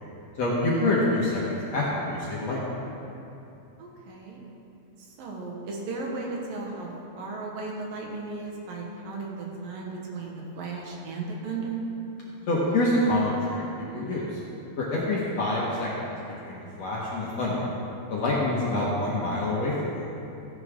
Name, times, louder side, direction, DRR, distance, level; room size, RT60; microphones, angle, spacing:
voice 1, 0.4-2.7 12.5-13.6 13.9-14.4 14.8-16.1 16.4-17.7 18.1-19.9, left 2 dB, 55° left, -6 dB, 2.0 m, -26 dB
voice 2, 3.8-4.4 5.0-6.9 7.2-11.8, right 3 dB, 65° right, -1 dB, 2.9 m, -35 dB
15.5 x 10.5 x 3.7 m, 2.8 s
omnidirectional pair, 4.6 m